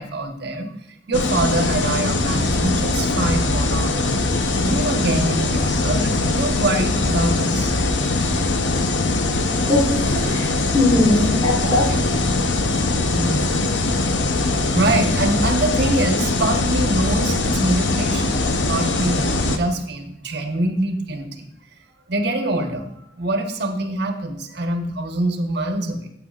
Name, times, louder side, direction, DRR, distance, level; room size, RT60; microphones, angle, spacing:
voice 1, 0.0-4.2 4.6-7.7 9.3-9.4 10.9-11.1 11.6-12.0 12.8-12.9 13.1-13.6 14.7-21.5 22.1-26.1, right 1 dB, 65° right, 4 dB, 1.2 m, -24 dB
sound 1, 1.1-19.6, left 2 dB, 85° left, 0.9 m, -21 dB
voice 2, 9.7-11.9, left 2 dB, 20° left, -1 dB, 2.0 m, -20 dB
14.0 x 8.6 x 2.5 m, 0.79 s
head